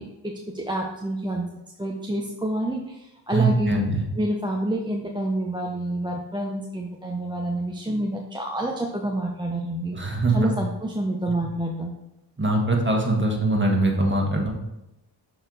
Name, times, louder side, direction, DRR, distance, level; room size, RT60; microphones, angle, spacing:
voice 1, 0.0-1.5 1.8-3.8 4.2-10.0 10.3-11.9, right 1 dB, 10° right, 0 dB, 0.7 m, -28 dB
voice 2, 3.3-4.0 9.9-10.5 12.4-14.5, right 2 dB, 25° right, 1 dB, 1.5 m, -22 dB
6.2 x 4.7 x 3.9 m, 0.91 s
cardioid pair, 50°, 44 cm